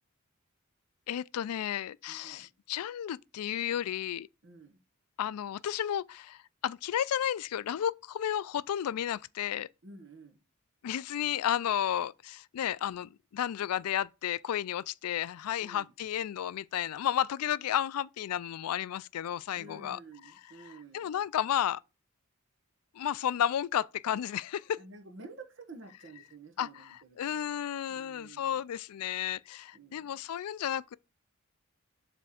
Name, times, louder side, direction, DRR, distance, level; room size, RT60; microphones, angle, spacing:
voice 1, 1.1-4.3 5.2-9.7 10.8-20.0 20.3-21.8 22.9-24.8 26.6-30.8, left 10 dB, 85° left, 0.3 m, -33 dB
voice 2, 2.1-2.5 4.4-4.8 9.8-10.4 15.6-15.9 19.5-21.1 24.8-27.3 27.9-28.5 29.7-30.2, right 3 dB, 55° right, 1.3 m, -51 dB
7.5 x 3.4 x 6.3 m
head